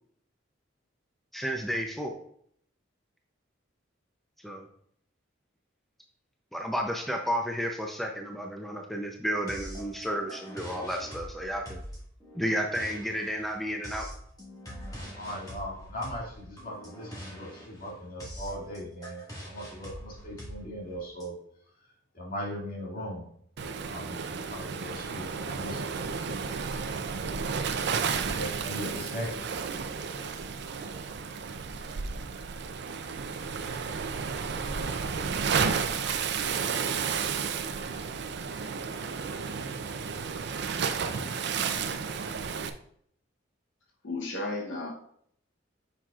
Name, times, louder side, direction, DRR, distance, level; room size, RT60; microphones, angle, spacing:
voice 1, 1.3-2.1 4.4-4.7 6.5-11.8 12.3-14.1, equal, ahead, 2 dB, 0.5 m, -32 dB
sound 1, 9.5-21.2, equal, 20° left, 1.7 m, -44 dB
voice 2, 15.1-21.4 21.8-23.3 23.6-25.9 26.5-26.7 28.3-29.5, equal, 50° left, -4 dB, 2.2 m, -39 dB
Waves surf, 23.6-42.7, right 5 dB, 60° right, 0.5 m, -32 dB
voice 3, 44.0-44.9, left 2 dB, 70° left, 1 dB, 0.9 m, -33 dB
7.3 x 5.7 x 2.4 m, 0.65 s
head